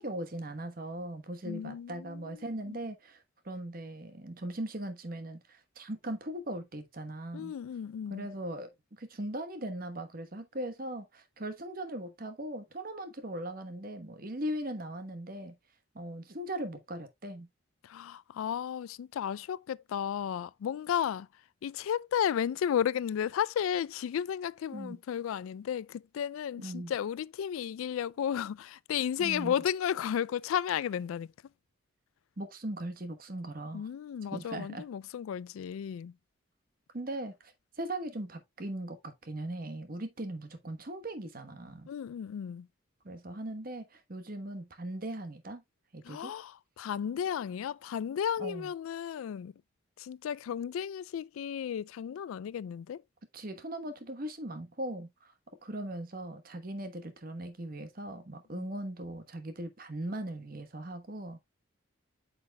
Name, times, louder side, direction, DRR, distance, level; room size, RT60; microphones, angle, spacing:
voice 1, 0.0-7.5 8.1-15.5 15.9-17.5 24.7-25.0 26.6-26.9 29.2-29.5 32.4-33.9 34.3-34.8 36.9-41.9 43.0-45.6 45.9-46.3 48.4-48.7 53.3-55.3 55.6-61.4, right 1 dB, 45° right, 1.1 m, -39 dB
voice 2, 1.4-2.8 7.3-8.3 17.8-21.3 21.6-31.3 33.7-36.1 41.9-42.7 46.0-49.5 50.0-53.0 58.6-58.7, left 9 dB, 85° left, 0.3 m, -33 dB
8.5 x 5.7 x 2.2 m
head